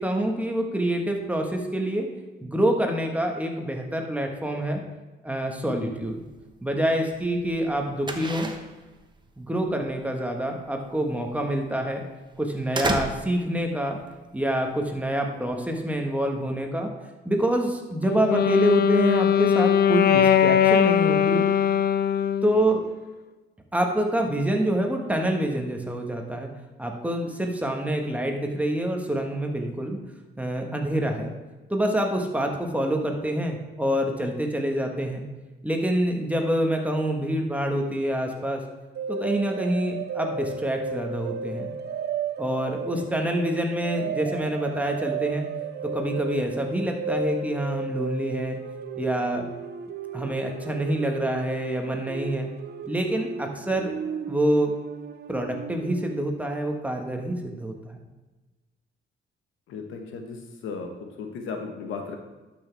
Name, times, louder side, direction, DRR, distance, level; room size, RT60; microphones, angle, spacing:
voice 1, 0.0-2.1 2.4-4.8 5.2-6.2 6.6-8.5 9.4-12.0 12.4-14.0 14.3-16.9 17.2-21.5 22.4-22.8 23.7-26.5 26.8-30.0 30.4-31.3 31.7-35.2 35.6-38.6 39.1-41.7 42.4-45.4 45.9-48.6 49.0-49.5 50.1-52.5 52.8-53.9 54.3-54.7 55.3-58.0, right 1 dB, 5° right, 2 dB, 1.4 m, -26 dB
sound 1, 5.9-16.6, right 3 dB, 25° right, 1.0 m, -36 dB
Wind instrument woodwind instrument, 18.0-22.6, left 9 dB, 50° left, 0.5 m, -20 dB
sound 2, 39.0-56.4, right 5 dB, 55° right, 0.6 m, -34 dB
voice 2, 59.7-62.2, left 5 dB, 80° left, 4 dB, 1.3 m, -36 dB
12.0 x 6.1 x 3.5 m, 1.2 s
cardioid pair, 90°, 20 cm